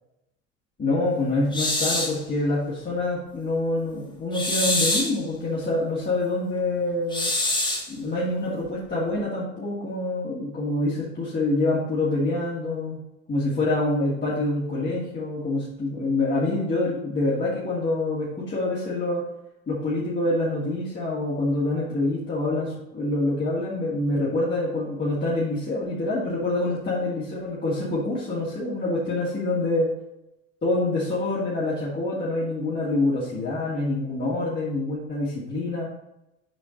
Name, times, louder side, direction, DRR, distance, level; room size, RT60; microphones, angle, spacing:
voice 1, 0.8-7.3 7.9-13.0 13.3-19.2 19.7-29.9 30.6-35.9, left 2 dB, 25° left, -8 dB, 2.5 m, -26 dB
sound 1, 1.5-2.2 4.3-5.2 7.1-7.9, left 2 dB, 10° left, 1.5 m, -25 dB
7.3 x 5.0 x 4.0 m, 0.89 s
hypercardioid pair, 70°, 39 cm